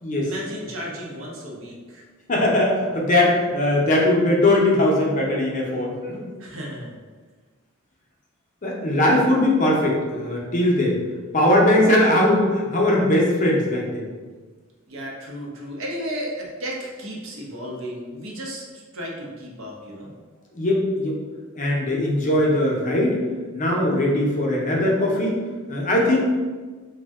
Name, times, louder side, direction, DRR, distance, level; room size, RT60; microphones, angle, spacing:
voice 1, 0.2-2.1 6.4-7.0 14.9-20.1, equal, 65° right, -2 dB, 0.6 m, -34 dB
voice 2, 2.3-6.3 8.6-11.0 11.3-14.1 20.5-21.2 21.5-23.2 23.5-25.3 25.7-26.2, left 1 dB, 35° left, -3 dB, 0.5 m, -20 dB
2.6 x 2.1 x 3.4 m, 1.4 s
head